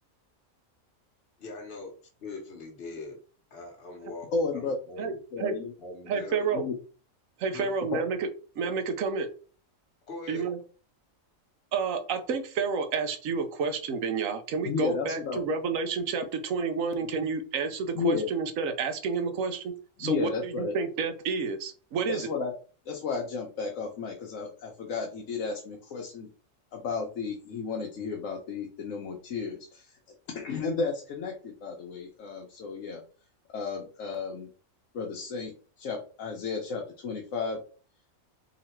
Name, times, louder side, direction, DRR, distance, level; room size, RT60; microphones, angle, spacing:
voice 1, 1.4-3.2 3.5-5.2 5.8-6.6 7.5-7.7 10.1-10.5, left 3 dB, 55° left, 0 dB, 1.3 m, -41 dB
voice 2, 4.3-4.8 5.3-5.7 6.5-6.7 7.9-8.0 14.7-15.4 17.1-17.2 17.9-18.3 20.0-20.7 22.1-22.5 22.9-26.3 26.7-29.9 30.3-33.0 33.5-34.5 34.9-37.6, left 4 dB, 75° left, 0 dB, 1.2 m, -33 dB
voice 3, 6.1-6.7 7.4-8.3 8.6-9.3 10.3-10.6 11.7-19.7 20.0-22.3, right 5 dB, 80° right, 8 dB, 1.2 m, -30 dB
3.9 x 2.9 x 4.4 m, 0.38 s
omnidirectional pair, 1.4 m